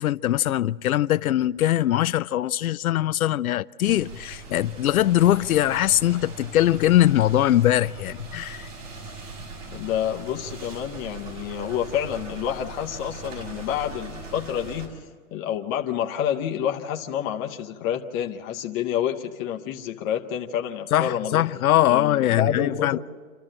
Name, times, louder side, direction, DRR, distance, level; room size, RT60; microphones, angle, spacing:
voice 1, 0.0-8.7 20.9-23.0, left 13 dB, 75° left, 0.5 m, -21 dB
sound 1, 3.8-14.9, right 3 dB, 60° right, 6.0 m, -40 dB
voice 2, 9.7-15.0 15.3-21.5 21.9-23.0, left 9 dB, 15° left, 0.6 m, -28 dB
28.0 x 13.5 x 7.6 m
hypercardioid pair, 155°, 44 cm